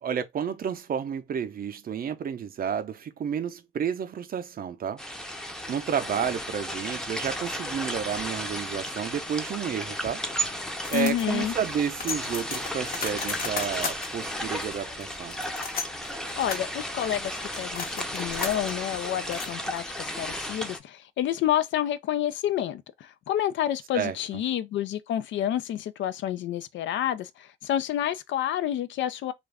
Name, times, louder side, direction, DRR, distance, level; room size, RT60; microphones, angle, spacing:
voice 1, 0.0-5.0 5.7-10.3 10.9-15.4 23.9-24.2, right 8 dB, 45° right, 0.6 m, -31 dB
sound 1, 5.0-20.8, equal, 5° left, 0.6 m, -34 dB
sound 2, 10.8-20.1, left 5 dB, 50° left, 0.9 m, -37 dB
voice 2, 10.9-11.5 16.4-29.3, left 11 dB, 70° left, 0.4 m, -29 dB
2.4 x 2.3 x 3.2 m
cardioid pair, 90°, 20 cm